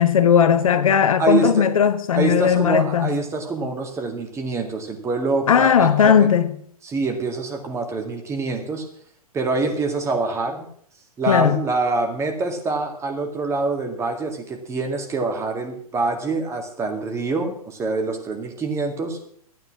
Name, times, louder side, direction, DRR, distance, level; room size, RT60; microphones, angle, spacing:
voice 1, 0.0-3.1 5.5-6.5 11.3-11.6, left 8 dB, 60° left, 1.2 m, -17 dB
voice 2, 1.2-1.7 2.1-6.3 6.8-8.8 9.3-10.7 11.2-19.2, right 3 dB, 15° right, 2.1 m, -25 dB
13.0 x 9.4 x 6.0 m
figure-of-eight pair, 115°, 19 cm